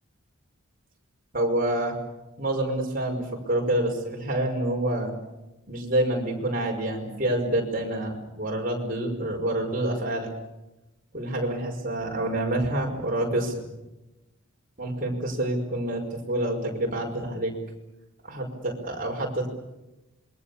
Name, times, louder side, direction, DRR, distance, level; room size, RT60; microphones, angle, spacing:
voice 1, 1.3-2.0 2.4-5.1 5.7-10.3 11.1-13.7 14.8-17.5 18.2-19.5, right 1 dB, 40° right, 1 dB, 5.6 m, -27 dB
27.0 x 23.0 x 7.0 m, 0.99 s
head